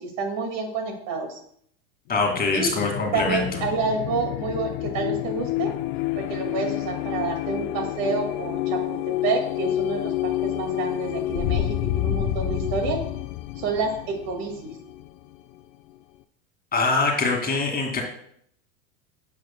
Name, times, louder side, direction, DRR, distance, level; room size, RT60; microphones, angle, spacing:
voice 1, 0.0-1.4 2.5-2.7 3.1-5.7 6.1-13.0 13.6-14.8, right 4 dB, 50° right, 4 dB, 2.3 m, -28 dB
sound 1, 2.1-15.6, left 14 dB, 50° left, 0.6 m, -29 dB
voice 2, 2.1-3.4 16.7-18.0, left 3 dB, 20° left, 1 dB, 2.4 m, -23 dB
10.5 x 8.0 x 2.3 m, 0.67 s
hypercardioid pair, 100°, 44 cm